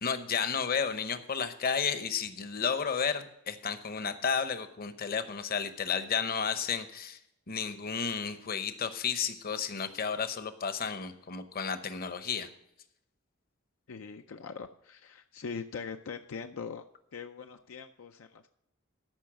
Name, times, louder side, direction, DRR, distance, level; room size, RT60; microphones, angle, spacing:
voice 1, 0.0-7.2 7.5-12.5, left 6 dB, 45° left, 10 dB, 0.9 m, -32 dB
voice 2, 13.9-16.8 17.1-18.5, left 5 dB, 70° left, 7 dB, 0.5 m, -42 dB
13.5 x 5.4 x 6.2 m, 0.81 s
head